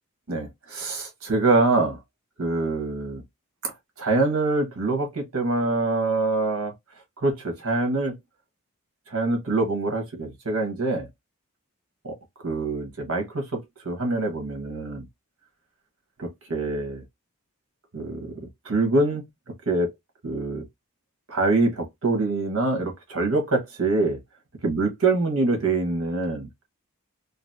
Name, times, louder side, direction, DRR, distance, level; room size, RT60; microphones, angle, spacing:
voice 1, 0.3-2.0 2.4-3.2 3.6-6.7 7.2-8.2 9.1-11.1 12.0-12.1 12.4-15.0 16.2-17.0 17.9-19.2 19.7-19.9 20.2-20.6 21.3-24.2 24.6-26.7, right 2 dB, 75° right, 1.3 m, -25 dB
4.0 x 2.0 x 2.7 m
head